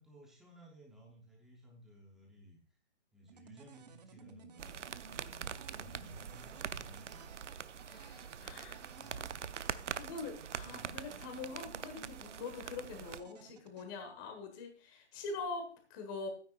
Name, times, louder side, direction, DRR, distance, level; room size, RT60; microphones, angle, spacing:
voice 1, 0.0-2.8 3.1-7.2 8.3-9.7 10.6-11.2 15.1-15.2, equal, ahead, -2 dB, 0.8 m, -58 dB
sound 1, 3.3-13.9, right 6 dB, 35° right, 0.8 m, -57 dB
sound 2, 4.6-13.2, right 7 dB, 85° right, 0.7 m, -44 dB
voice 2, 7.9-9.3 9.9-16.3, left 4 dB, 15° left, 5 dB, 1.4 m, -44 dB
12.0 x 9.6 x 2.4 m, 0.40 s
hypercardioid pair, 160°, 36 cm